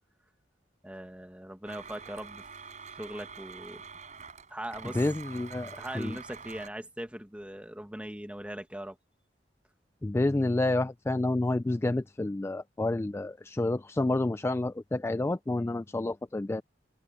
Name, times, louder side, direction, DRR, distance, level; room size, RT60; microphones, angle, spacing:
voice 1, 0.8-2.5 2.9-3.9 4.5-5.0 5.8-9.0, right 1 dB, 5° right, 1.8 m, -40 dB
Domestic sounds home sounds, 1.7-6.7, right 5 dB, 45° right, 4.6 m, -46 dB
voice 2, 4.9-6.2 10.0-16.6, left 2 dB, 15° left, 0.3 m, -29 dB
head